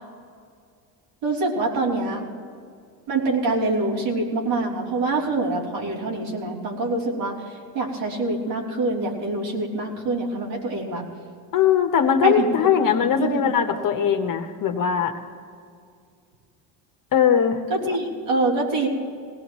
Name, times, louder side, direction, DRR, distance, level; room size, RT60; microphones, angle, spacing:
voice 1, 1.2-2.3 3.1-11.0 12.2-12.7 13.0-13.9 17.7-18.9, right 2 dB, 75° right, -4 dB, 3.7 m, -25 dB
voice 2, 11.5-15.1 17.1-18.0, left 8 dB, 45° left, 5 dB, 1.4 m, -20 dB
20.5 x 17.5 x 3.2 m, 2.3 s
supercardioid pair, 100°, 46 cm